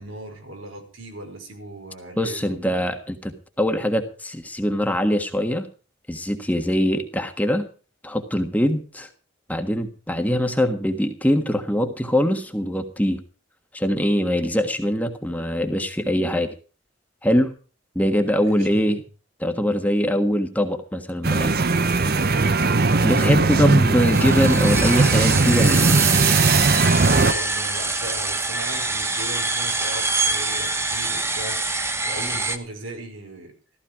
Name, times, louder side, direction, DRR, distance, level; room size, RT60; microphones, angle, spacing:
voice 1, 0.0-2.7 18.4-19.0 23.3-23.6 27.0-31.6 32.1-33.6, right 1 dB, 85° right, 4 dB, 5.3 m, -37 dB
voice 2, 2.2-5.7 6.1-7.7 8.0-9.1 9.5-13.2 13.7-16.5 17.2-17.5 17.9-19.0 19.4-21.6 23.0-26.0, equal, 10° left, 5 dB, 1.5 m, -22 dB
sound 1, 21.2-27.3, right 3 dB, 50° right, 0.8 m, -18 dB
sound 2, 24.1-32.6, right 3 dB, 15° right, 1.1 m, -25 dB
15.0 x 14.5 x 4.9 m, 0.36 s
head